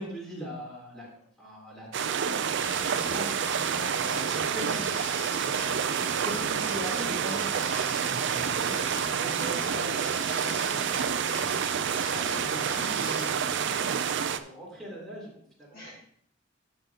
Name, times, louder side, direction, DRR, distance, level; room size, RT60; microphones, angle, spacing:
voice 1, 0.0-5.9 6.2-7.8 9.1-12.1 12.5-15.8, equal, ahead, -5 dB, 3.5 m, -42 dB
sound 1, 1.9-14.4, right 7 dB, 60° right, 0.5 m, -28 dB
sound 2, 2.6-13.3, left 1 dB, 20° left, 4.3 m, -41 dB
voice 2, 8.3-8.7 11.9-12.5 15.7-16.0, left 1 dB, 50° left, -7 dB, 2.5 m, -44 dB
12.0 x 6.8 x 3.0 m, 0.64 s
head